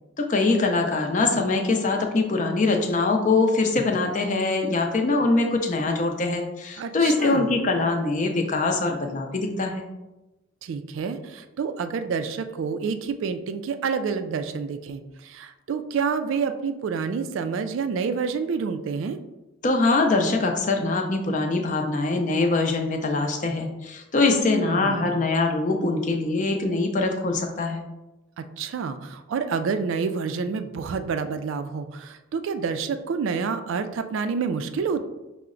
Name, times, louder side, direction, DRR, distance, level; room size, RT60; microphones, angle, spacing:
voice 1, 0.2-9.9 19.6-27.8, left 3 dB, 35° left, 3 dB, 0.5 m, -23 dB
voice 2, 6.8-7.5 10.6-19.2 24.3-25.2 28.4-35.0, right 5 dB, 65° right, 9 dB, 0.3 m, -28 dB
5.6 x 2.0 x 3.7 m, 1.0 s
head